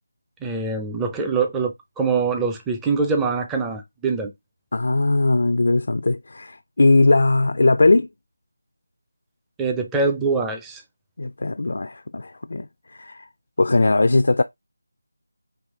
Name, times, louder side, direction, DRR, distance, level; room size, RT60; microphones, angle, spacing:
voice 1, 0.4-4.3 9.6-10.8, right 4 dB, 5° right, 0.4 m, -24 dB
voice 2, 4.7-8.1 11.2-13.3 13.6-14.4, left 2 dB, 60° left, 0.3 m, -19 dB
4.7 x 2.5 x 3.6 m
figure-of-eight pair, 170°, 0 cm